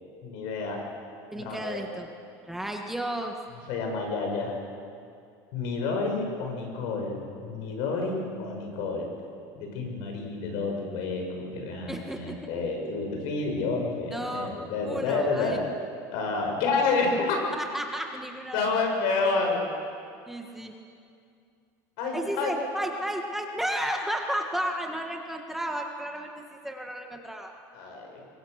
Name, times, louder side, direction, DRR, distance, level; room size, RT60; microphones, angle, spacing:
voice 1, 0.2-0.8 1.4-1.9 3.7-4.6 5.5-9.1 9.6-15.6 16.1-17.4 18.5-19.7 22.0-22.5 27.7-28.2, left 3 dB, 70° left, 2 dB, 6.4 m, -29 dB
voice 2, 1.3-2.1 2.5-3.3 11.9-12.4 14.1-14.6 14.8-15.6 17.6-18.8 20.3-20.7 22.1-27.5, right 1 dB, 5° right, 2 dB, 1.6 m, -33 dB
25.5 x 23.0 x 6.6 m, 2.4 s
cardioid pair, 150°, 9 cm